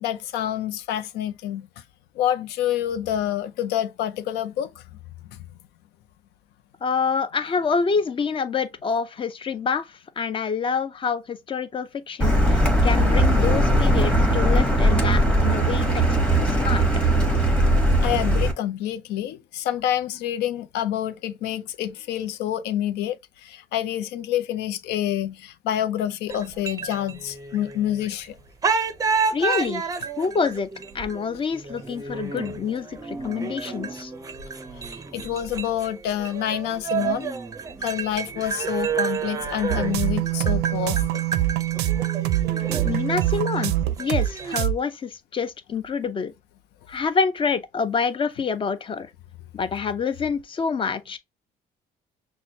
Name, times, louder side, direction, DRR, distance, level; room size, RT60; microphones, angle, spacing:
voice 1, 0.0-1.6 2.2-4.7 18.0-23.2 23.4-28.3 35.1-37.3 37.8-41.2, left 11 dB, 80° left, 0.5 m, -27 dB
voice 2, 6.8-9.9 10.2-16.2 16.4-16.8 29.3-29.8 30.2-30.7 30.9-34.1 42.8-46.3 46.9-49.1 49.5-51.2, left 5 dB, 30° left, 0.5 m, -27 dB
Car, 12.2-18.5, right 1 dB, 5° left, 1.0 m, -19 dB
sound 1, 26.3-28.2 28.6-44.6, right 5 dB, 20° right, 0.5 m, -30 dB
sound 2, 39.7-44.3 44.6-44.7, right 14 dB, 80° right, 0.4 m, -24 dB
6.0 x 2.1 x 2.7 m
cardioid pair, 110°, 17 cm